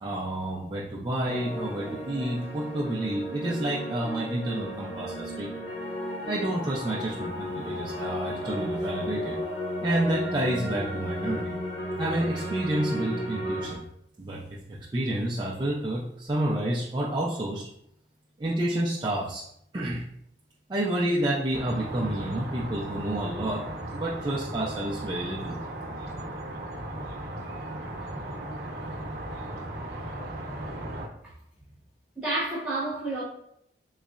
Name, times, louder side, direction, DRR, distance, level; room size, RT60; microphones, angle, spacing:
voice 1, 0.0-5.5 6.3-9.4 9.8-11.5 12.0-13.8 14.2-17.7 18.4-19.4 19.7-20.0 20.7-23.6 23.9-25.6, right 1 dB, 25° right, -5 dB, 0.4 m, -29 dB
sound 1, 1.3-13.8, equal, 85° left, 1.1 m, -34 dB
sound 2, 21.5-31.1, right 1 dB, 60° right, 0.8 m, -36 dB
voice 2, 32.2-33.2, right 2 dB, 5° right, -9 dB, 0.9 m, -30 dB
3.8 x 3.1 x 2.4 m, 0.73 s
head